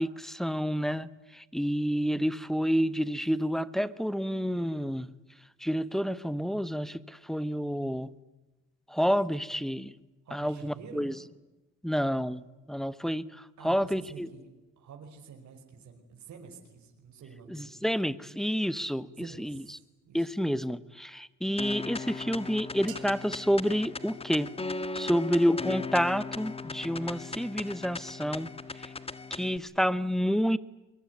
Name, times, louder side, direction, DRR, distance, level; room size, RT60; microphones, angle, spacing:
voice 1, 0.0-5.1 5.6-8.1 8.9-9.9 10.3-11.1 11.8-12.4 12.7-14.3 17.5-19.6 20.1-24.5 24.9-28.5 28.8-28.9 29.3-30.6, equal, ahead, 15 dB, 1.3 m, -29 dB
voice 2, 10.2-11.2 13.6-14.5 14.8-17.7 19.1-20.3 25.0-25.1, right 6 dB, 65° right, 3 dB, 5.6 m, -49 dB
sound 1, 21.6-29.6, left 3 dB, 20° left, 1.6 m, -38 dB
sound 2, 22.9-24.9, right 12 dB, 80° right, 3.0 m, -52 dB
24.0 x 22.5 x 9.7 m, 1.1 s
cardioid pair, 90°, 30 cm